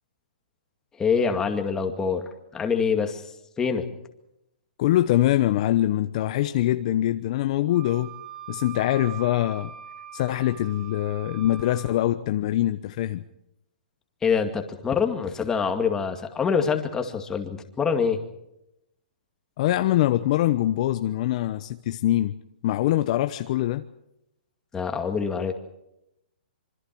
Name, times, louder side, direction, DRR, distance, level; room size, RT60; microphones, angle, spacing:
voice 1, 1.0-2.3 2.5-3.2 3.6-3.9 14.2-18.2 24.7-25.5, left 6 dB, 10° left, 5 dB, 2.2 m, -25 dB
voice 2, 4.8-8.1 8.5-9.7 10.1-13.2 19.6-22.3 22.6-23.9, left 14 dB, 40° left, 9 dB, 0.9 m, -23 dB
Wind instrument woodwind instrument, 7.7-12.0, right 10 dB, 65° right, 4.1 m, -42 dB
26.0 x 24.5 x 4.7 m, 0.82 s
hypercardioid pair, 155°, 5 cm